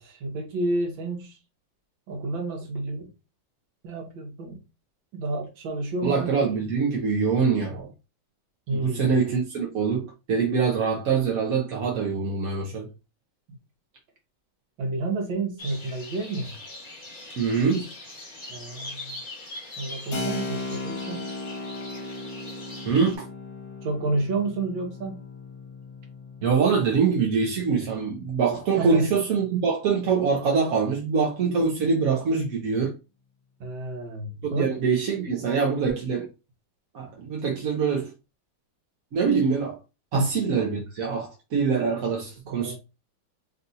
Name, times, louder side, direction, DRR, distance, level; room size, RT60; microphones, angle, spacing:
voice 1, 0.0-1.4 2.1-3.1 3.8-4.6 5.1-6.4 8.7-9.1 14.8-16.5 18.5-19.1 19.8-21.2 23.8-25.2 28.8-29.1 33.6-34.7 40.1-40.3 42.5-42.7, right 2 dB, 75° right, 2.0 m, -30 dB
voice 2, 6.0-7.9 8.7-12.9 17.4-17.9 22.9-23.2 26.4-32.9 34.4-36.3 36.9-38.1 39.1-39.8 40.1-42.7, right 5 dB, 55° right, 1.1 m, -24 dB
sound 1, 15.6-23.1, left 2 dB, 30° left, 1.1 m, -41 dB
Keyboard (musical), 20.1-28.5, left 3 dB, 60° left, 1.5 m, -37 dB
4.0 x 2.5 x 4.0 m
omnidirectional pair, 2.1 m